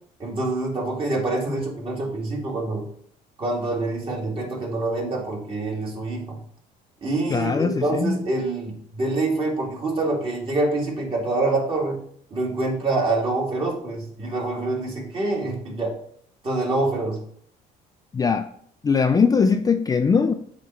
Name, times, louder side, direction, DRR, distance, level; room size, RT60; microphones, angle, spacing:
voice 1, 0.2-2.9 3.4-6.4 7.0-12.0 12.3-16.0 16.4-17.2, right 2 dB, 35° right, -2 dB, 2.2 m, -26 dB
voice 2, 7.3-8.2 18.1-18.5 18.8-20.3, left 5 dB, 20° left, 7 dB, 0.4 m, -21 dB
8.1 x 3.1 x 4.4 m, 0.63 s
cardioid pair, 110°, 17 cm